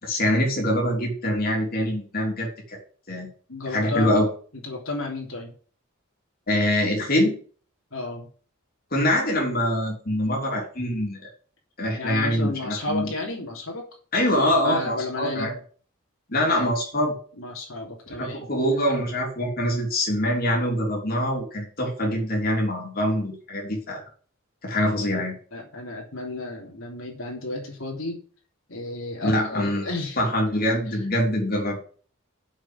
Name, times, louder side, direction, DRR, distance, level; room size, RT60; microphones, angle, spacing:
voice 1, 0.0-2.8 3.1-3.3 3.7-4.3 6.5-7.4 8.9-11.3 11.8-13.1 14.1-15.5 16.3-17.2 18.2-24.0 24.6-25.3 29.2-29.9 30.2-31.8, left 1 dB, 45° left, -1 dB, 3.6 m, -24 dB
voice 2, 3.5-4.2 4.6-5.5 7.9-8.3 12.0-13.9 14.6-15.5 17.3-18.4 24.8-28.2 28.7-30.2 30.9-31.0, left 2 dB, 75° left, -1 dB, 3.3 m, -33 dB
7.3 x 6.6 x 7.9 m, 0.43 s
head